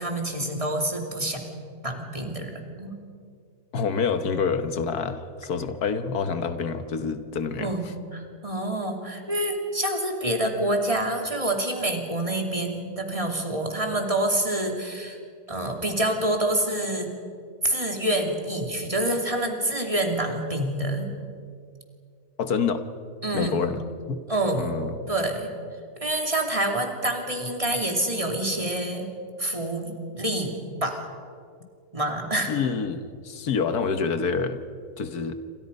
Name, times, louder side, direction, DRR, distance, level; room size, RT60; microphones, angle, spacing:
voice 1, 0.0-1.4 1.8-3.0 7.6-7.9 8.1-15.2 15.5-17.1 17.6-21.1 23.2-23.6 24.3-24.7 25.1-25.5 26.0-29.1 29.4-31.0 31.9-32.5, right 1 dB, 20° right, 2 dB, 2.9 m, -27 dB
voice 2, 3.7-7.7 22.4-22.9 23.3-23.8 24.1-24.2 24.6-24.9 32.5-34.6 35.0-35.3, left 5 dB, 80° left, 9 dB, 1.8 m, -27 dB
28.5 x 26.0 x 5.4 m, 2.2 s
omnidirectional pair, 1.6 m